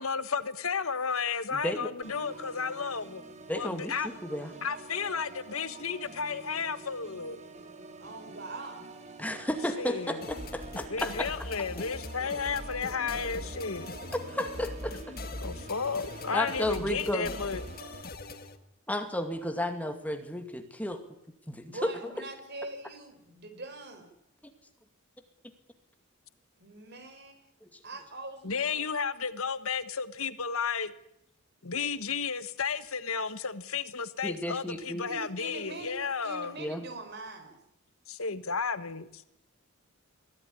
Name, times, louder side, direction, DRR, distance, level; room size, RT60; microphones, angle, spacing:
voice 1, 0.0-3.2 3.6-4.1 4.6-7.4 9.8-10.2 10.9-13.9 15.4-17.6 28.4-30.9 31.6-36.5 38.1-39.2, left 5 dB, 75° left, 13 dB, 1.5 m, -33 dB
voice 2, 1.5-1.9 3.5-3.9 4.2-4.5 9.2-11.3 14.3-15.1 16.3-17.3 18.9-21.0 21.5-22.1 27.6-27.7 34.2-35.1 36.6-36.8, left 1 dB, 5° left, 6 dB, 2.2 m, -33 dB
Organ, 2.0-18.0, right 3 dB, 30° right, 2.4 m, -48 dB
voice 3, 8.0-9.0 21.6-24.1 26.6-27.5 27.8-28.9 35.1-36.0 36.2-37.6, right 2 dB, 50° right, 8 dB, 4.9 m, -43 dB
sound 1, 10.2-18.6, left 2 dB, 45° left, 1.8 m, -41 dB
23.0 x 16.0 x 10.0 m, 0.80 s
head